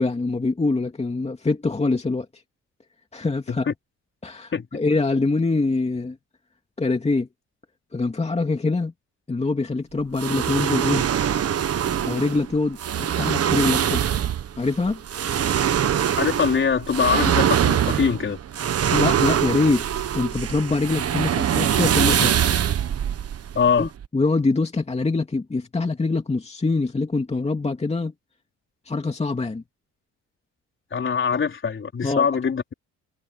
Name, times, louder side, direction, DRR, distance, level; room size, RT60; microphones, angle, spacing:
voice 1, 0.0-2.3 3.1-3.7 4.2-6.2 6.8-7.3 7.9-8.9 9.3-11.1 12.0-14.0 14.6-15.0 18.9-22.4 23.8-28.1 28.9-29.6 32.0-32.3, left 3 dB, 20° left, 2.5 m, -24 dB
voice 2, 4.5-4.8 16.2-18.4 23.5-23.9 30.9-32.7, left 6 dB, 40° left, 4.1 m, -23 dB
sound 1, 10.2-24.1, right 9 dB, 55° right, 1.4 m, -23 dB
cardioid pair, 90°, 30 cm